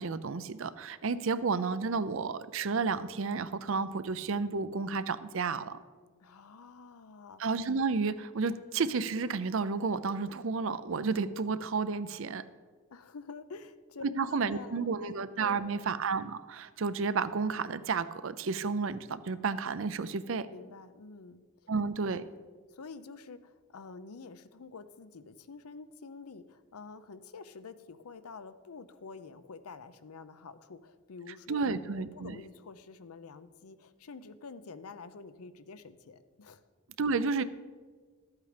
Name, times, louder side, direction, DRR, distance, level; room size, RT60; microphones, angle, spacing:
voice 1, 0.0-5.8 7.4-12.4 14.2-20.5 21.7-22.2 31.5-32.4 37.0-37.4, right 4 dB, 65° right, 14 dB, 0.5 m, -31 dB
voice 2, 6.2-7.4 12.9-15.9 20.5-21.4 22.7-36.6, left 4 dB, 85° left, 13 dB, 0.6 m, -48 dB
13.0 x 8.2 x 5.0 m, 1.5 s
head